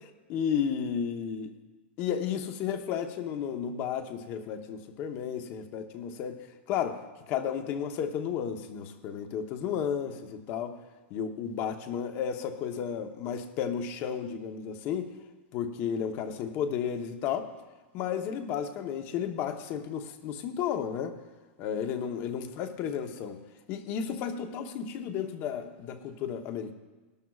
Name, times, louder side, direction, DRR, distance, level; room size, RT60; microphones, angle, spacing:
voice 1, 0.0-1.5 2.0-6.4 6.7-7.0 7.3-10.8 11.1-15.1 15.5-17.5 17.9-21.1 21.6-23.4 23.7-26.7, left 8 dB, 35° left, 7 dB, 0.9 m, -33 dB
18.5 x 12.0 x 2.4 m, 1.2 s
supercardioid pair, 165°, 6 cm